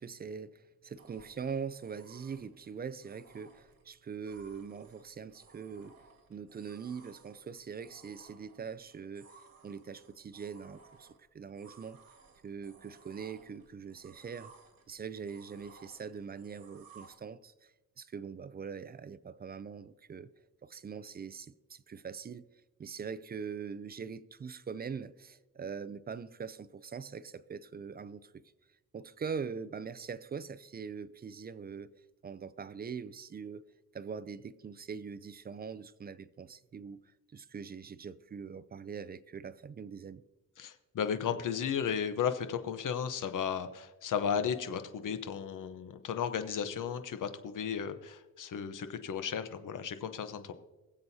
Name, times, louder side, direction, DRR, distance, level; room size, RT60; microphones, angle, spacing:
voice 1, 0.0-6.0 6.3-9.4 9.6-11.1 11.3-12.0 12.4-14.5 14.9-17.7 18.0-20.3 20.6-22.4 22.8-28.4 28.9-31.9 32.2-33.6 33.9-37.0 37.3-40.2, right 6 dB, 30° right, 0.4 m, -42 dB
sound 1, 1.0-17.2, right 4 dB, 80° right, 2.0 m, -60 dB
voice 2, 40.6-50.5, left 7 dB, 65° left, 0.9 m, -34 dB
23.0 x 7.7 x 2.8 m
cardioid pair, 120°, 34 cm